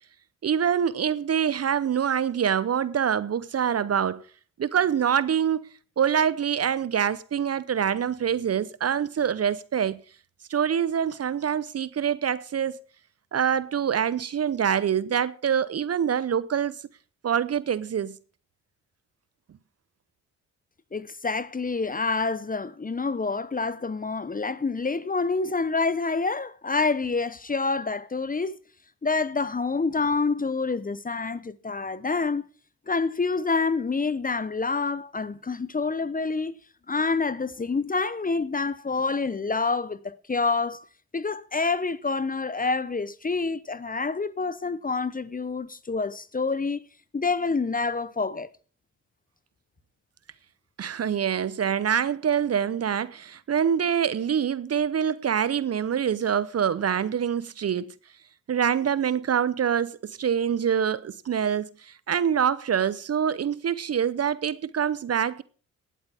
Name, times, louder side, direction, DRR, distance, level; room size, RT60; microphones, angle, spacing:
voice 1, 0.4-4.2 4.6-5.7 6.0-10.0 10.5-12.8 13.3-16.7 17.2-18.2 50.8-57.9 58.5-65.4, right 8 dB, 40° right, 0.8 m, -25 dB
voice 2, 20.9-28.6 29.0-32.4 32.9-36.6 36.9-40.8 41.1-46.8 47.1-48.5, left 4 dB, 20° left, 0.8 m, -27 dB
19.5 x 8.1 x 3.5 m
hypercardioid pair, 40°, 38 cm